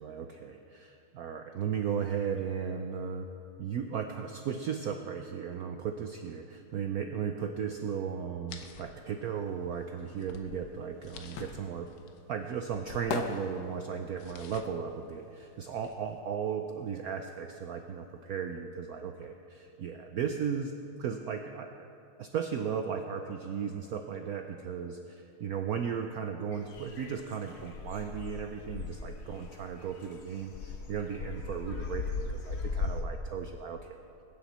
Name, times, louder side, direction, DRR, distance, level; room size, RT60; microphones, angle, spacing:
voice 1, 0.0-3.3 3.6-11.9 12.3-20.7 21.0-21.9 22.2-34.1, right 7 dB, 90° right, 5 dB, 0.8 m, -36 dB
sound 1, 8.5-16.2, left 6 dB, 90° left, 1.8 m, -53 dB
sound 2, 10.5-16.3 16.6-18.2 18.5-18.6, left 6 dB, 70° left, 1.6 m, -41 dB
sound 3, 26.5-33.0, left 4 dB, 45° left, 0.9 m, -38 dB
21.5 x 10.0 x 4.2 m, 2.7 s
omnidirectional pair, 2.3 m